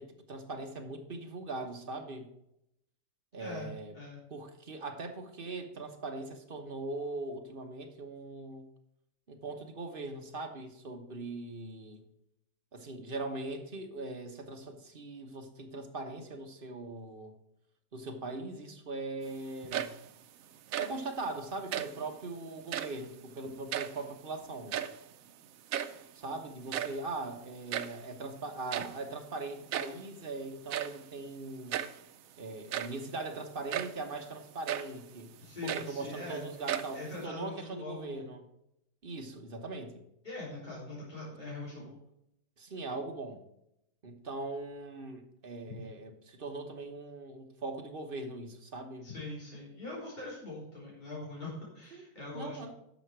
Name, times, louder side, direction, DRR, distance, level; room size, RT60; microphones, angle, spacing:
voice 1, 0.0-2.3 3.3-3.9 4.3-8.7 9.3-12.0 12.7-17.3 17.9-19.9 20.8-24.8 26.1-31.8 32.4-35.3 35.6-38.4 39.0-40.0 41.7-41.8 42.6-43.4 44.0-49.1 51.9-52.1 52.3-52.7, right 2 dB, 40° right, 4 dB, 1.3 m, -40 dB
sound 1, 19.5-20.2 20.5-21.1 21.6-22.1 22.6-23.1 23.4-24.3 24.5-25.2 25.4-25.5 25.7-26.1 26.5-28.1 28.7-29.1 29.7-30.1 30.7-31.0 31.7-32.0 32.5-33.1 33.7-34.0 34.7-35.0 35.4-36.3 36.7-37.3, right 10 dB, 70° right, 1.0 m, -36 dB
voice 2, 35.4-36.4 36.9-38.2 40.2-42.0 49.0-52.6, left 2 dB, 30° left, -6 dB, 3.6 m, -42 dB
10.5 x 6.4 x 4.6 m, 0.80 s
omnidirectional pair, 1.6 m